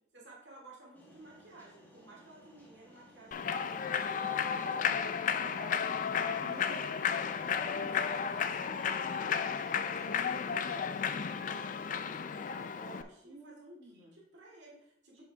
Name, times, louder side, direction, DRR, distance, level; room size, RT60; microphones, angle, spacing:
voice 1, 0.1-5.4 7.7-10.5 10.9-15.2, right 2 dB, 60° right, -3 dB, 2.4 m, -54 dB
sound 1, 0.9-13.4, equal, 10° left, 1.4 m, -59 dB
Human voice / Clapping / Cheering, 3.3-13.0, left 7 dB, 40° left, 0.3 m, -33 dB
voice 2, 5.4-7.0 7.4-8.0 13.2-14.2 15.1-15.2, right 2 dB, 35° right, -8 dB, 2.0 m, -50 dB
7.3 x 6.1 x 3.4 m, 0.74 s
head